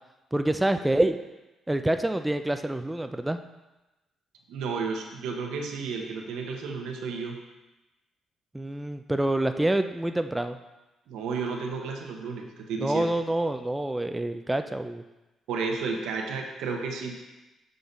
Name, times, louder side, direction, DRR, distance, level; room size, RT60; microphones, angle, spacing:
voice 1, 0.3-1.2 1.7-3.4 8.5-10.6 12.8-15.0, right 1 dB, 10° right, 7 dB, 0.3 m, -26 dB
voice 2, 4.5-7.4 11.1-13.1 15.5-17.2, right 4 dB, 90° right, 2 dB, 0.9 m, -32 dB
6.8 x 3.8 x 4.0 m, 1.0 s
cardioid pair, 90°, 0 cm